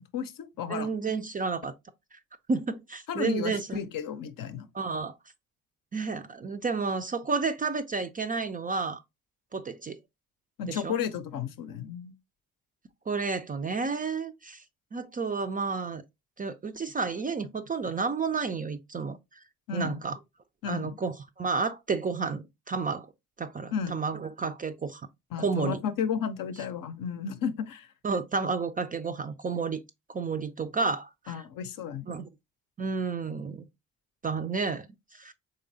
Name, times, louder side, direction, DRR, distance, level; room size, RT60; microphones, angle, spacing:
voice 1, 0.0-0.9 3.1-4.7 10.6-12.1 19.7-20.0 20.6-20.9 23.7-23.9 25.3-27.9 31.3-32.1, left 7 dB, 60° left, 0.6 m, -33 dB
voice 2, 0.7-1.7 2.1-2.2 2.5-3.8 4.7-5.1 5.9-9.0 9.5-10.0 10.7-11.0 13.1-14.6 14.9-16.0 16.4-19.2 19.7-20.2 20.7-23.1 23.4-25.0 25.4-25.8 28.0-29.8 30.1-31.4 32.1-32.3 32.8-33.6 34.2-34.9 35.1-35.3, right 4 dB, 25° right, 0.3 m, -31 dB
3.8 x 3.2 x 2.6 m
hypercardioid pair, 45°, 38 cm